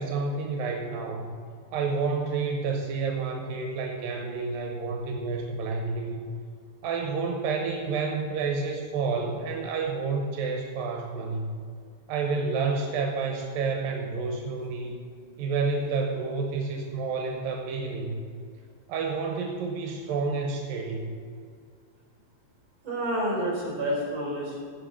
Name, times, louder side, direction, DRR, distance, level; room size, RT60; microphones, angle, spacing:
voice 1, 0.0-1.4 1.7-6.2 6.8-11.6 12.1-15.0 15.4-18.2 18.9-21.2, right 4 dB, 85° right, 2 dB, 2.7 m, -29 dB
voice 2, 22.8-24.6, right 1 dB, 50° right, -5 dB, 4.9 m, -29 dB
16.5 x 5.7 x 7.3 m, 2.1 s
omnidirectional pair, 4.0 m